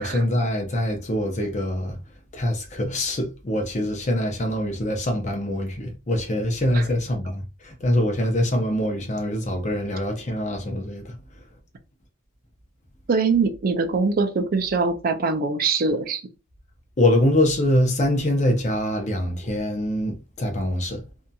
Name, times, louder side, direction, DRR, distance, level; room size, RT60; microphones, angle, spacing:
voice 1, 0.0-2.0 2.3-11.2 17.0-21.0, left 1 dB, 35° left, 0.7 m, -24 dB
voice 2, 13.1-16.2, right 4 dB, 45° right, 0.4 m, -23 dB
2.7 x 2.7 x 2.2 m
head